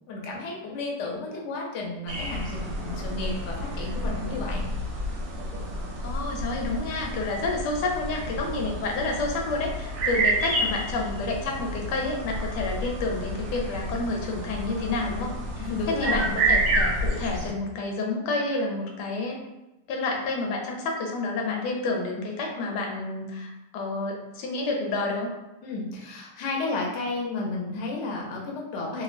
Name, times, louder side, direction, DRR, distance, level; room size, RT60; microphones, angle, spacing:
voice 1, 0.1-4.6 10.0-10.2 15.6-16.4 25.6-29.0, left 3 dB, 65° left, -2 dB, 0.7 m, -32 dB
sound 1, 2.1-17.5, right 1 dB, 65° right, 1.1 m, -30 dB
voice 2, 6.0-19.4 19.9-25.3, left 3 dB, 80° left, 0 dB, 1.2 m, -29 dB
3.0 x 2.2 x 2.4 m, 0.97 s
omnidirectional pair, 1.8 m